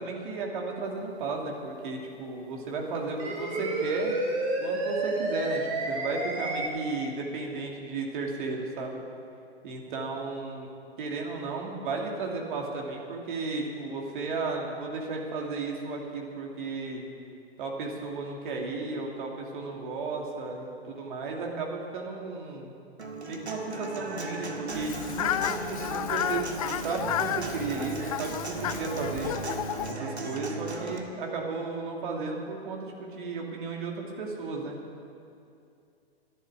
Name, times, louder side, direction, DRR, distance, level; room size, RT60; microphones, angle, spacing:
voice 1, 0.0-4.2 4.6-9.0 9.6-10.7 11.0-17.0 17.6-22.7 23.3-29.3 29.9-34.8, right 3 dB, 50° right, 0 dB, 2.9 m, -34 dB
sound 1, 2.9-6.7, right 2 dB, 25° right, 2.3 m, -30 dB
Human voice / Acoustic guitar, 23.0-31.0, right 3 dB, 85° right, 2.0 m, -37 dB
Fowl, 24.7-29.9, left 11 dB, 35° left, 0.4 m, -32 dB
12.5 x 11.0 x 8.3 m, 2.5 s
figure-of-eight pair, 120°, 32 cm